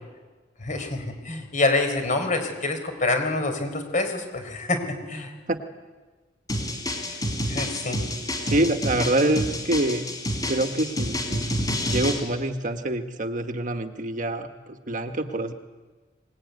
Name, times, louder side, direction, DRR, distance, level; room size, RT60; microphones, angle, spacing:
voice 1, 0.6-4.8 5.1-5.3 7.1-7.2 7.5-8.0, left 2 dB, 45° left, 6 dB, 4.6 m, -26 dB
sound 1, 6.5-12.2, left 1 dB, 20° left, 4.1 m, -29 dB
voice 2, 8.4-10.0 10.5-15.5, right 1 dB, 45° right, 7 dB, 1.4 m, -26 dB
23.5 x 20.0 x 9.5 m, 1.3 s
head